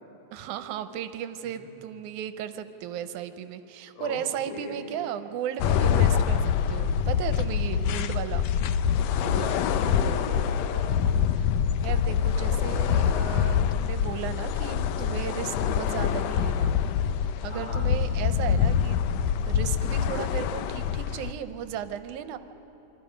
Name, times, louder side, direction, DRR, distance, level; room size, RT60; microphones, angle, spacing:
voice 1, 0.3-8.5 11.8-16.8 17.4-19.1 19.5-22.4, right 9 dB, 85° right, 10 dB, 2.2 m, -35 dB
voice 2, 4.0-4.8 9.1-10.8 17.5-17.8, left 1 dB, 50° left, -3 dB, 5.4 m, -37 dB
sound 1, 5.6-21.3, left 8 dB, 75° left, 1.6 m, -25 dB
27.5 x 23.5 x 5.1 m, 3.0 s
omnidirectional pair, 3.4 m